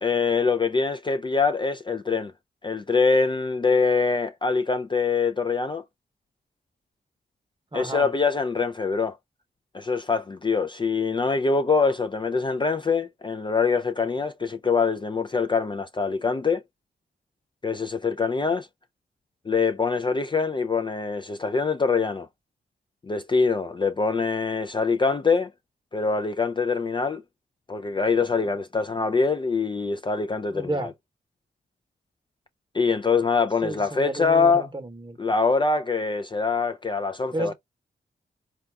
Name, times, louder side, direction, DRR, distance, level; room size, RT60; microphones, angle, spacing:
voice 1, 0.0-2.3 2.6-5.8 7.7-9.2 9.7-16.6 17.6-18.7 19.5-22.3 23.1-25.5 25.9-27.2 27.7-30.9 32.7-34.7 35.2-37.5, left 4 dB, 25° left, 0.4 m, -24 dB
voice 2, 7.7-8.1 30.5-30.9 33.6-35.2 37.3-37.5, right 2 dB, 25° right, 1.0 m, -31 dB
3.9 x 2.3 x 3.4 m
cardioid pair, 60°, 19 cm